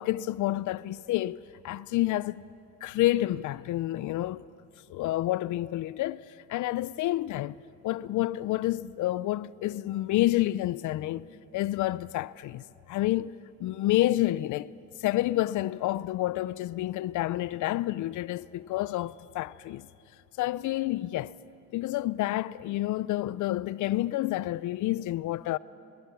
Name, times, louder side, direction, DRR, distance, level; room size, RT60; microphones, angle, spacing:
voice 1, 0.0-1.4 1.6-2.4 2.8-4.4 4.9-6.2 6.5-7.6 7.8-11.3 11.5-13.3 13.6-14.7 15.0-19.9 20.4-21.3 21.7-25.6, left 15 dB, 75° left, 0.5 m, -29 dB
23.0 x 21.0 x 6.9 m
cardioid pair, 90°, 30 cm